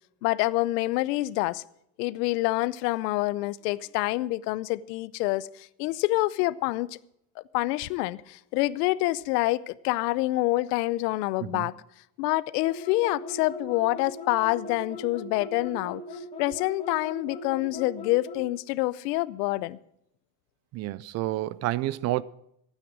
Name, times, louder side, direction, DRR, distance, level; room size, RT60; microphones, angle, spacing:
voice 1, 0.2-1.6 2.0-7.0 7.4-11.7 12.2-16.0 16.4-19.8, left 19 dB, 90° left, 0.8 m, -27 dB
sound 1, 12.6-18.5, left 1 dB, 15° left, 2.3 m, -39 dB
voice 2, 20.7-22.2, right 16 dB, 35° right, 0.4 m, -29 dB
15.5 x 9.2 x 6.1 m
cardioid pair, 150°, 47 cm